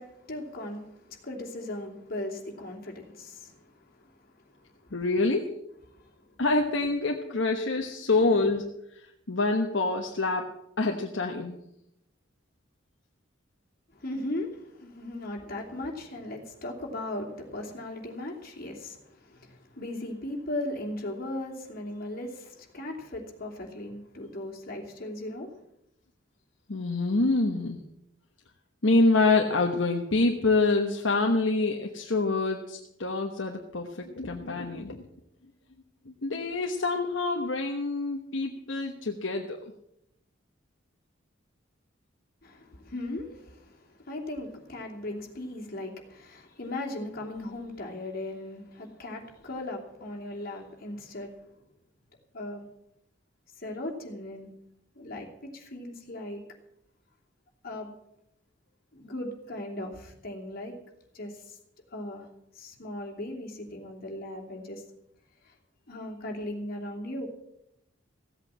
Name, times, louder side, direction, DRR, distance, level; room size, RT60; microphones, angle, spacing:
voice 1, 0.0-4.9 5.9-6.3 13.9-25.5 42.4-51.3 52.3-52.7 53.6-54.5 54.9-56.4 57.6-57.9 58.9-60.7 61.1-61.6 61.9-62.3 62.5-64.8 65.4-65.5 65.9-67.3, left 1 dB, 50° left, 0 dB, 3.0 m, -38 dB
voice 2, 4.9-5.5 6.4-8.6 9.0-10.5 10.8-11.6 26.7-27.8 28.8-35.1 36.0-39.7, left 3 dB, 70° left, 2 dB, 1.2 m, -26 dB
16.0 x 8.3 x 7.5 m, 0.80 s
head